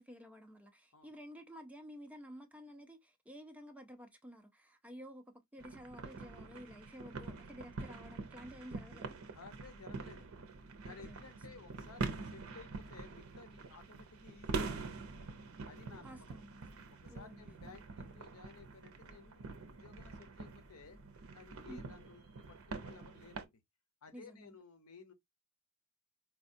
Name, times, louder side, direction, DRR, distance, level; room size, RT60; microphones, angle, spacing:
voice 1, 0.0-9.2 10.9-11.2 16.0-16.6 17.1-17.4 21.7-21.9 24.1-24.5, equal, 5° right, 0.5 m, -52 dB
sound 1, 5.6-23.5, right 4 dB, 70° right, 0.7 m, -45 dB
voice 2, 9.3-10.4 10.8-15.3 15.7-16.4 16.9-21.0 21.3-23.6 24.0-25.1, left 4 dB, 75° left, 0.8 m, -56 dB
4.5 x 2.3 x 2.6 m
head